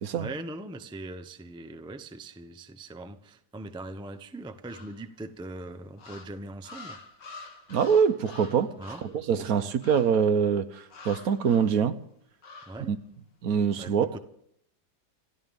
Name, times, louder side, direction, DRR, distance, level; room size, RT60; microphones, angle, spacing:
voice 1, 0.2-7.0 8.8-9.0 9.4-9.7 12.7-12.9 13.8-14.2, right 2 dB, 5° right, 0.4 m, -41 dB
sound 1, 4.7-5.3 6.0-9.2 9.8-10.3 10.9-11.8 12.4-12.9, left 3 dB, 90° left, 2.2 m, -47 dB
voice 2, 7.7-8.7 9.0-12.0 12.9-13.0 13.4-14.1, right 7 dB, 65° right, 1.2 m, -24 dB
27.5 x 13.0 x 3.6 m
omnidirectional pair, 1.8 m